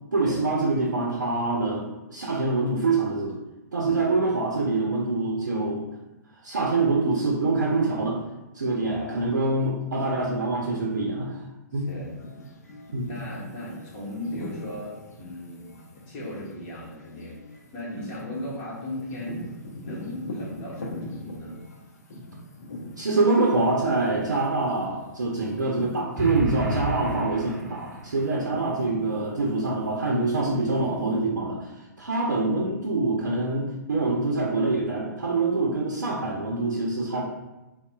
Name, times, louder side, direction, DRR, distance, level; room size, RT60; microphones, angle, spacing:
voice 1, 0.1-1.8 2.1-3.4 3.7-5.9 6.4-8.2 8.5-11.4 11.7-11.9 12.9-13.1 23.0-37.2, right 3 dB, 75° right, -2 dB, 0.5 m, -25 dB
voice 2, 3.8-4.2 8.8-9.3 10.1-10.3 11.7-12.2 13.1-17.4 17.7-19.5 19.8-21.6, left 1 dB, 35° left, -5 dB, 0.9 m, -37 dB
sound 1, 11.8-27.0 27.3-31.2, left 1 dB, 60° left, 0.6 m, -42 dB
sound 2, 26.2-28.2, right 1 dB, 15° right, 0.5 m, -30 dB
4.0 x 2.1 x 2.2 m, 1.0 s
figure-of-eight pair, 115°, 10 cm